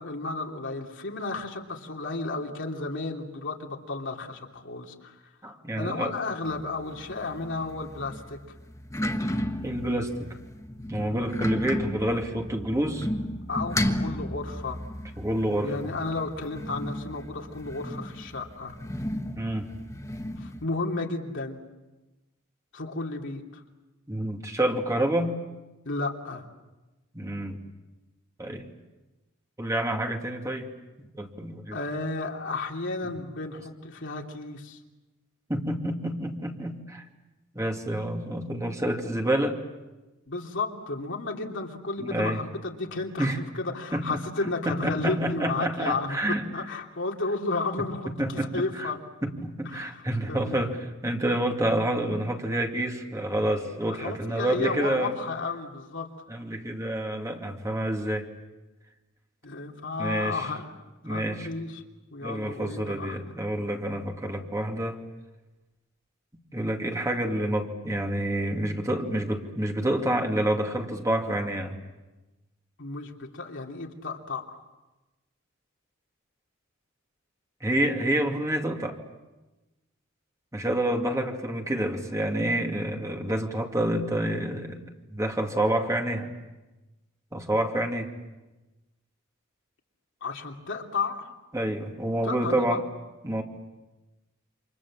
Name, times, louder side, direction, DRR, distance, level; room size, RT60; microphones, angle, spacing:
voice 1, 0.0-5.2 5.7-8.4 11.0-11.3 13.5-14.8 15.6-18.7 20.4-21.6 22.7-23.6 25.8-26.4 31.7-34.8 40.3-46.2 46.5-49.0 49.6-50.6 53.9-56.1 59.4-60.8 61.0-61.8 62.1-63.2 63.9-64.0 72.8-74.6 90.2-91.3 92.2-92.8, left 3 dB, 60° left, 1 dB, 3.1 m, -33 dB
voice 2, 5.4-6.1 9.6-10.3 10.9-13.1 15.2-15.9 19.4-19.7 24.1-25.4 27.1-27.6 28.4-28.7 29.6-30.7 31.2-31.8 35.5-37.0 37.5-39.6 42.0-42.4 43.2-43.4 43.9-46.4 48.1-48.9 49.2-55.1 56.3-58.3 60.0-60.5 61.0-61.5 62.2-65.0 66.5-71.8 77.6-79.0 80.5-84.8 85.1-86.3 87.3-88.1 91.5-92.8 93.2-93.4, right 1 dB, 15° right, 2 dB, 2.6 m, -28 dB
sound 1, 6.4-20.6, left 1 dB, 15° left, 1.5 m, -34 dB
29.0 x 27.0 x 7.5 m, 1.1 s
head